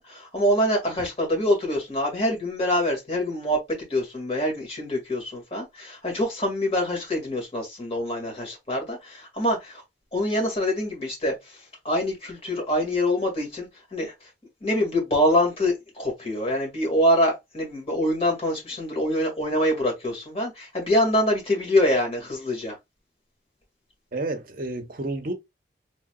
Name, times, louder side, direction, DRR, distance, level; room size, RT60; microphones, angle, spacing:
voice 1, 0.0-9.8 10.1-14.3 14.6-22.8, left 1 dB, 30° left, 1.8 m, -25 dB
voice 2, 24.1-25.3, right 2 dB, 50° right, 0.7 m, -30 dB
3.9 x 3.3 x 2.3 m
head